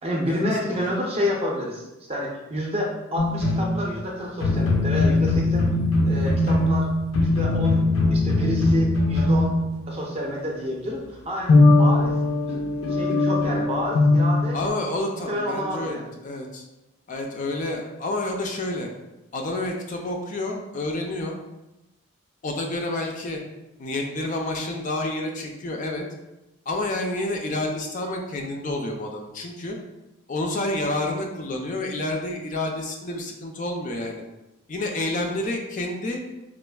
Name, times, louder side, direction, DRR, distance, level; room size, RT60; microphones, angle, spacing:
voice 1, 0.0-5.7 6.0-6.9 7.2-7.8 8.1-9.5 9.9-11.5 11.8-12.2 12.9-14.6 15.3-16.1, equal, 30° right, -1 dB, 0.5 m, -29 dB
sound 1, 3.2-4.0 4.4-10.1 11.5-14.7, left 2 dB, 85° left, 0.5 m, -20 dB
voice 2, 14.5-16.6 17.1-18.9 19.3-21.4 22.4-23.4 23.8-26.1 26.7-29.8 30.3-34.2 34.7-36.2, left 2 dB, 35° left, 1 dB, 0.4 m, -29 dB
4.1 x 2.4 x 2.3 m, 0.96 s
head